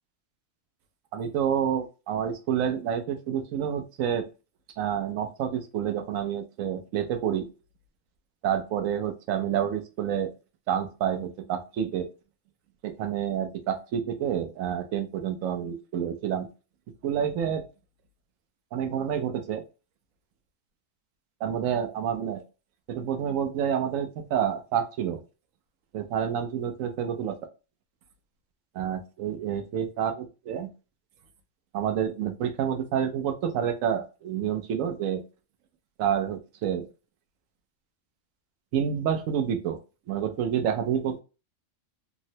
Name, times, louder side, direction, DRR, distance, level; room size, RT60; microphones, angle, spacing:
voice 1, 1.1-4.3 4.8-7.5 8.4-10.3 10.7-12.1 12.8-16.5 17.0-17.7 18.7-19.6 21.4-22.4 22.9-25.2 25.9-27.4 28.7-30.7 31.7-35.2 36.0-36.9 38.7-39.8 40.1-41.2, right 9 dB, 85° right, 7 dB, 1.0 m, -28 dB
3.6 x 2.1 x 2.7 m, 0.31 s
omnidirectional pair, 1.3 m